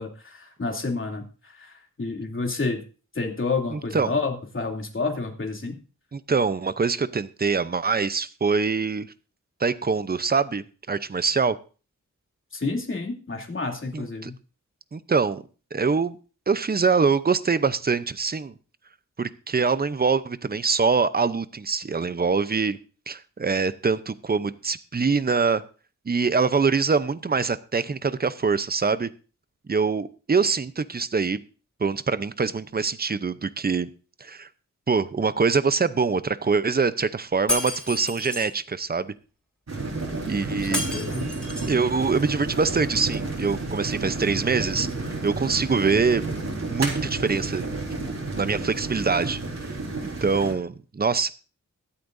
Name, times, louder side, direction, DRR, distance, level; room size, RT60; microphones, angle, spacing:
voice 1, 0.0-2.8 3.1-5.8 12.5-14.3 40.5-41.3, left 3 dB, 40° left, 1 dB, 2.8 m, -30 dB
voice 2, 3.7-4.1 6.1-9.1 9.6-11.6 13.9-14.3 14.9-15.4 15.7-16.2 16.5-18.5 19.2-22.8 23.1-25.6 26.1-29.1 29.7-31.4 31.8-33.9 34.2-34.5 34.9-39.1 40.3-40.9 41.7-46.2 46.7-47.7 48.4-49.7 50.0-51.3, right 5 dB, 30° right, 14 dB, 0.7 m, -24 dB
Shatter, 37.5-38.5 40.7-41.8, left 1 dB, 5° left, 4.9 m, -30 dB
sound 1, 39.7-50.5, right 3 dB, 60° right, 4.2 m, -31 dB
23.5 x 8.5 x 2.6 m, 0.36 s
wide cardioid pair, 100°, 31 cm